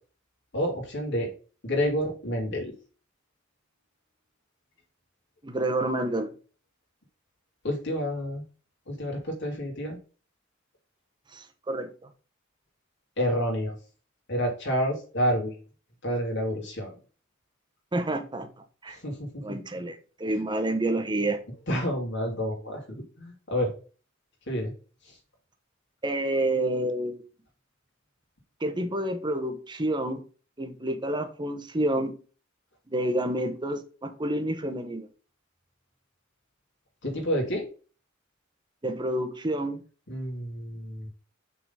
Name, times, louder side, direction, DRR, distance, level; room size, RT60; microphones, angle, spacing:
voice 1, 0.5-1.3 1.6-2.7 7.6-8.4 8.9-10.0 13.2-13.7 14.3-15.6 16.0-17.0 18.9-19.6 21.7-22.8 23.2-23.7 24.5-24.7 37.0-37.7 40.1-41.1, equal, 60° left, 2.7 m, -29 dB
voice 2, 5.4-6.3 11.3-11.9 17.9-18.5 18.8-19.0 19.4-21.4 26.0-27.2 28.6-30.2 30.6-32.2 32.9-35.1 38.8-39.8, right 1 dB, 25° right, 0.9 m, -29 dB
6.0 x 3.9 x 5.4 m
head